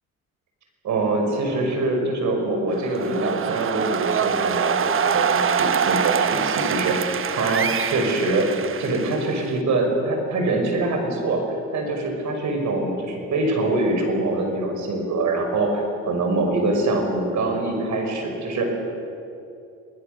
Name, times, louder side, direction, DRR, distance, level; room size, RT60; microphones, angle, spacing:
voice 1, 0.8-7.0 7.4-8.5 8.8-11.4 11.7-18.6, right 2 dB, 70° right, 3 dB, 5.7 m, -24 dB
sound 1, 2.7-9.6, right 7 dB, 45° right, 1.0 m, -24 dB
28.5 x 20.0 x 6.8 m, 2.7 s
cardioid pair, 90°, 30 cm